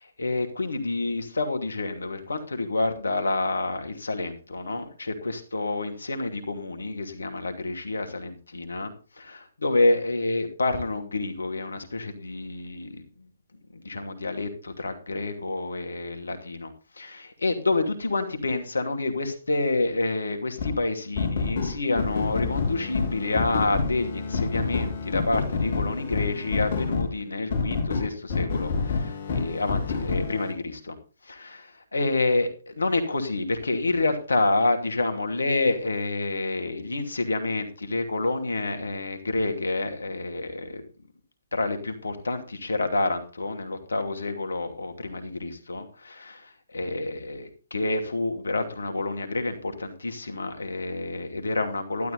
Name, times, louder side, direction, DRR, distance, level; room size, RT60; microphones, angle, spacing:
voice 1, 0.0-13.3 13.7-31.0 31.2-40.8 41.5-46.4 46.7-52.1, left 2 dB, 80° left, 7 dB, 2.5 m, -28 dB
sound 1, 20.6-20.8 21.2-27.1 27.5-30.5, left 4 dB, 50° left, 4.6 m, -28 dB
12.0 x 12.0 x 4.0 m, 0.35 s
figure-of-eight pair, 130°, 0 cm